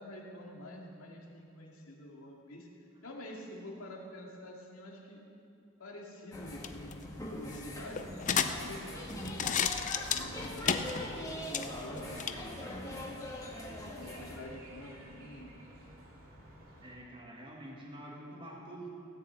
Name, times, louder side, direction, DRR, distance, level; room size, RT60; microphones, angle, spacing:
voice 1, 0.0-2.7 3.0-5.2 5.8-9.3 10.1-13.2 13.8-15.5, left 1 dB, 80° left, -1 dB, 2.4 m, -47 dB
sound 1, 6.3-14.4, left 1 dB, 15° left, 1.8 m, -42 dB
sound 2, 6.4-12.4, left 7 dB, 35° left, 0.6 m, -35 dB
sound 3, 9.4-17.0, right 1 dB, 75° right, 3.1 m, -54 dB
voice 2, 16.8-18.9, right 1 dB, 25° right, -2 dB, 1.8 m, -47 dB
17.0 x 6.9 x 8.1 m, 2.7 s
head